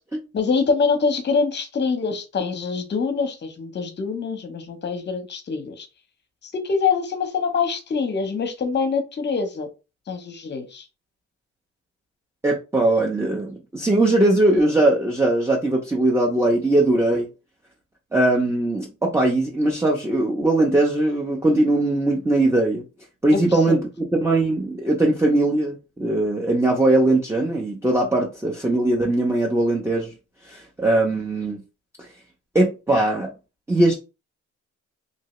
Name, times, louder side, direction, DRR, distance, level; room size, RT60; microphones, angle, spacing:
voice 1, 0.3-5.9 6.4-9.7 10.1-10.9 23.3-23.8, left 5 dB, 35° left, 0.8 m, -25 dB
voice 2, 12.4-17.3 18.1-22.8 23.2-30.1 30.5-31.6 32.5-33.3 33.7-33.9, right 2 dB, 10° right, 0.6 m, -20 dB
2.7 x 2.7 x 3.0 m
cardioid pair, 90°, 30 cm